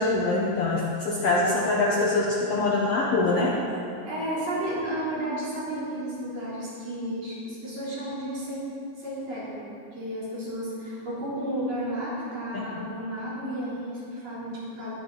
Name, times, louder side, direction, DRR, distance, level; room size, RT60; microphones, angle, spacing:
voice 1, 0.0-3.6 12.8-12.9, left 2 dB, 65° left, -3 dB, 1.6 m, -24 dB
voice 2, 4.0-8.7 9.0-14.9, right 1 dB, 50° right, -9 dB, 4.5 m, -32 dB
20.5 x 8.0 x 4.0 m, 2.5 s
omnidirectional pair, 3.8 m